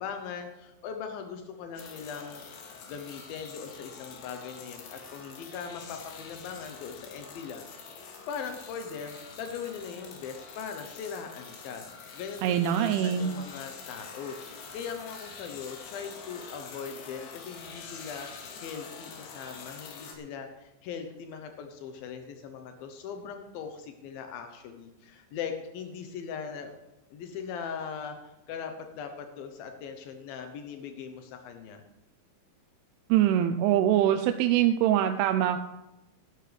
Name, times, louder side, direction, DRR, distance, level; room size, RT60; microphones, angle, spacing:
voice 1, 0.0-2.4 2.9-7.6 8.3-26.7 27.1-31.8, left 6 dB, 85° left, 5 dB, 2.0 m, -40 dB
sound 1, 1.8-20.2, left 5 dB, 70° left, 3.5 m, -46 dB
voice 2, 12.4-13.3 33.1-35.6, right 11 dB, 85° right, 7 dB, 3.0 m, -23 dB
15.5 x 12.0 x 3.3 m, 0.98 s
omnidirectional pair, 5.5 m